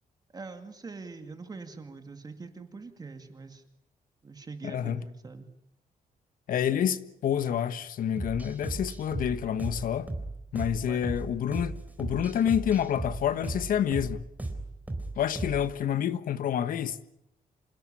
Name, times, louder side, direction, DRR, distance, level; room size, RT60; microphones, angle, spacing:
voice 1, 0.3-3.6 4.2-5.5 10.9-11.0, right 4 dB, 25° right, 2.3 m, -43 dB
voice 2, 4.6-5.0 6.5-10.1 10.5-14.2 15.2-17.1, left 9 dB, 75° left, 1.4 m, -28 dB
sound 1, 8.2-15.8, right 2 dB, 10° right, 3.9 m, -36 dB
27.5 x 17.0 x 9.8 m
wide cardioid pair, 145°, 14 cm